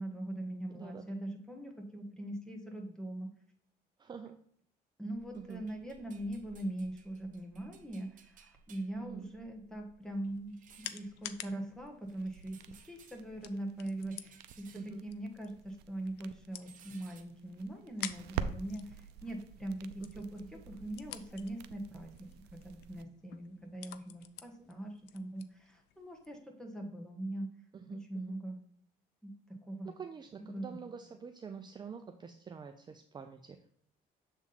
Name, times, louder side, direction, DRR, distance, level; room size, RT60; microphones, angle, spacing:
voice 1, 0.0-3.3 5.0-12.6 12.9-27.5 27.9-28.6 29.2-29.9 30.4-30.8, right 1 dB, 5° left, 2 dB, 1.4 m, -41 dB
voice 2, 0.7-1.0 4.0-4.4 5.3-5.7 9.0-9.3 14.7-15.1 20.0-20.6 24.6-24.7 27.7-28.4 29.8-33.6, right 6 dB, 25° right, 6 dB, 0.5 m, -47 dB
sound 1, 5.1-16.0 16.2-17.2, right 6 dB, 50° right, 0.8 m, -61 dB
sound 2, 10.0-26.4, left 12 dB, 85° left, 0.5 m, -51 dB
sound 3, 12.0-23.0, right 8 dB, 80° right, 0.5 m, -47 dB
7.2 x 3.6 x 4.1 m, 0.65 s
cardioid pair, 110°, 17 cm